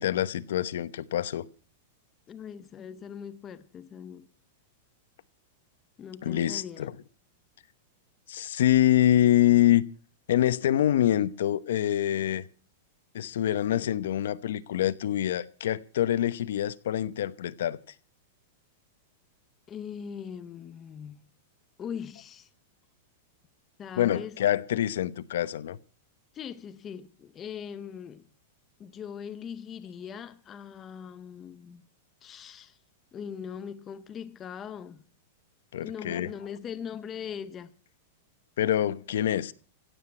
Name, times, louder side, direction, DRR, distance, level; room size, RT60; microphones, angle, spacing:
voice 1, 0.0-1.5 6.2-6.9 8.3-9.8 10.3-12.4 13.1-17.8 24.0-25.8 35.7-36.3 38.6-39.5, left 12 dB, 70° left, 0.9 m, -25 dB
voice 2, 2.3-4.3 6.0-6.9 19.7-21.2 21.8-22.5 23.8-24.4 26.3-28.3 28.8-31.8 32.2-32.8 33.1-35.1 35.8-37.7, left 7 dB, 15° left, 0.6 m, -40 dB
17.0 x 8.0 x 8.8 m
supercardioid pair, 175°, 0 cm